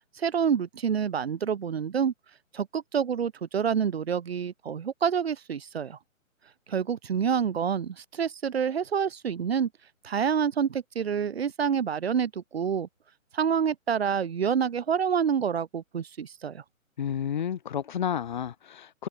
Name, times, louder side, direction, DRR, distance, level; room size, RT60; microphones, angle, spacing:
voice 1, 0.2-2.1 2.5-6.0 6.7-9.7 10.0-12.9 13.3-16.6, right 7 dB, 45° right, 3.6 m, -27 dB
voice 2, 17.0-19.1, left 9 dB, 35° left, 2.0 m, -31 dB
hypercardioid pair, 170°, 41 cm